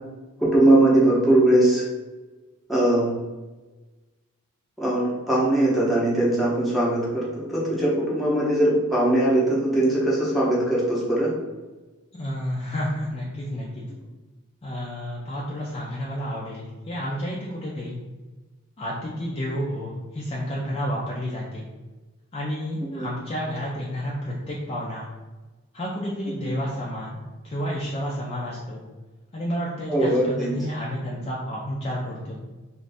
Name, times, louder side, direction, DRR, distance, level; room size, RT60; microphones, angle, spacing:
voice 1, 0.4-1.8 2.7-3.1 4.8-11.3 22.9-23.1 29.9-30.5, right 1 dB, ahead, -7 dB, 0.7 m, -20 dB
voice 2, 12.1-13.8 14.6-18.0 18.8-21.6 22.3-25.1 25.7-27.2 27.4-28.8 29.3-32.4, equal, 25° left, -4 dB, 0.4 m, -30 dB
2.5 x 2.5 x 3.3 m, 1.2 s
head